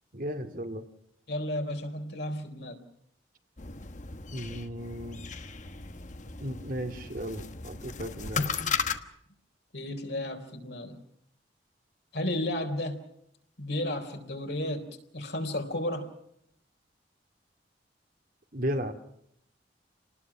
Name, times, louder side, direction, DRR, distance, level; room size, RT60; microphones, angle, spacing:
voice 1, 0.1-0.9 4.3-5.2 6.4-8.5 18.5-18.9, equal, 50° right, 5 dB, 2.2 m, -35 dB
voice 2, 1.3-2.8 9.7-11.0 12.1-13.0 13.6-16.1, left 1 dB, 65° left, 4 dB, 4.0 m, -33 dB
sound 1, 3.6-9.0, left 5 dB, 45° left, 1.3 m, -35 dB
28.5 x 19.5 x 6.1 m, 0.73 s
head